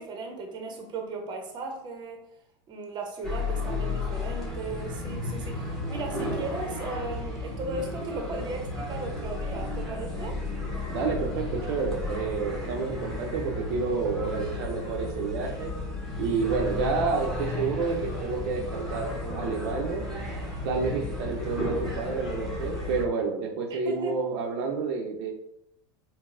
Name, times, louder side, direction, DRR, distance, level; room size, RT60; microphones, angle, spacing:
voice 1, 0.0-2.2 2.7-10.4 23.7-24.2, right 2 dB, 30° right, 3 dB, 0.7 m, -36 dB
sound 1, 3.2-23.1, left 2 dB, 5° left, 0.9 m, -33 dB
voice 2, 10.9-15.7 16.2-20.0 20.6-25.3, right 5 dB, 70° right, 1 dB, 0.6 m, -29 dB
3.8 x 2.0 x 2.5 m, 0.76 s
supercardioid pair, 110°, 14 cm